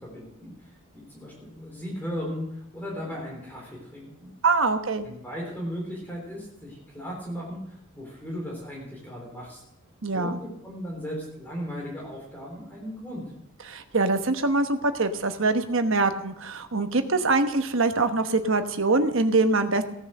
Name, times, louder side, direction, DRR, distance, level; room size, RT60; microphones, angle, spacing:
voice 1, 0.0-4.3 5.0-9.6 10.1-13.3, equal, 10° left, -3 dB, 4.0 m, -37 dB
voice 2, 4.4-5.1 10.0-10.4 13.7-19.8, right 3 dB, 65° right, 8 dB, 1.1 m, -24 dB
16.5 x 9.6 x 6.6 m, 0.78 s
head